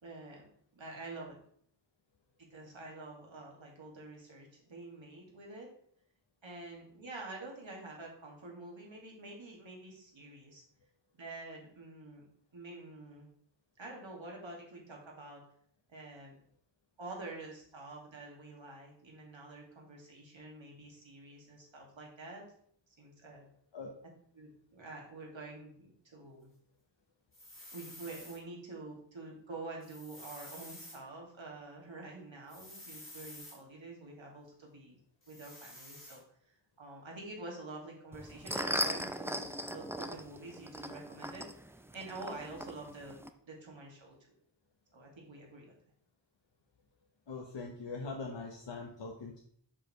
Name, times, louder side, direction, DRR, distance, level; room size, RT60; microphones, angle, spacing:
voice 1, 0.0-1.4 2.5-5.7 6.4-10.6 11.1-12.3 12.5-13.3 13.8-15.4 15.9-16.4 17.0-22.4 23.0-23.5 24.3-26.5 27.7-35.0 35.3-41.5 41.9-43.2 43.5-44.1 44.9-45.8, right 2 dB, 90° right, -1 dB, 2.2 m, -47 dB
sound 1, 27.3-28.4 29.8-31.0 32.5-33.6 35.2-36.2, left 1 dB, 30° left, 2.6 m, -50 dB
sound 2, 38.1-43.3, equal, 5° right, 0.4 m, -39 dB
voice 2, 47.3-49.4, left 3 dB, 70° left, 1 dB, 1.0 m, -42 dB
7.5 x 6.7 x 3.1 m, 0.62 s
wide cardioid pair, 80°, 45 cm